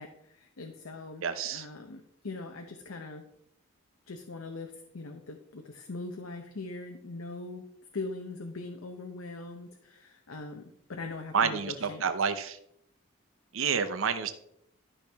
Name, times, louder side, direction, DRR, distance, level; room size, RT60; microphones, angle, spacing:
voice 1, 0.0-1.2 1.5-3.2 4.1-7.6 7.9-12.0, left 3 dB, 90° left, 4 dB, 0.8 m, -41 dB
voice 2, 1.2-1.7 11.3-12.6 13.5-14.3, right 6 dB, 80° right, 10 dB, 0.7 m, -29 dB
12.0 x 5.9 x 3.5 m, 0.74 s
head